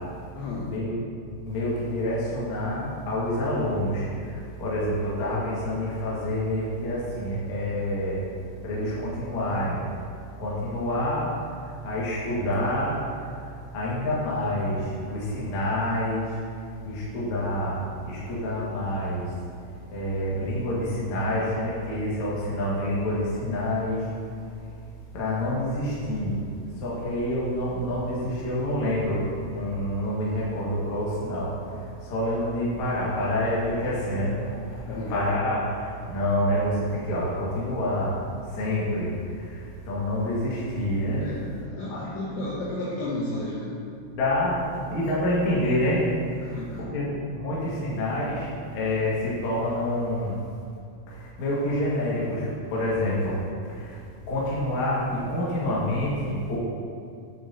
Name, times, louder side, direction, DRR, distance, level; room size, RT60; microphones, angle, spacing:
voice 1, 0.3-0.7 34.9-35.2 41.2-43.8 46.4-46.9, left 2 dB, 80° left, -4 dB, 2.5 m, -33 dB
voice 2, 1.4-4.1 4.6-8.2 8.6-9.8 10.4-11.3 11.8-12.9 13.7-14.8 15.1-16.2 16.9-17.8 18.0-19.2 19.9-24.0 25.1-26.3 26.8-29.2 29.5-31.5 32.1-34.5 35.1-35.6 36.1-38.1 38.6-39.1 39.9-41.2 41.9-42.0 42.3-42.4 44.1-44.6 44.9-46.1 46.8-48.5 48.7-50.3 51.4-52.5 52.7-53.3 54.3-56.6, left 1 dB, 60° left, -7 dB, 2.0 m, -27 dB
9.8 x 7.5 x 2.8 m, 2.4 s
omnidirectional pair, 5.9 m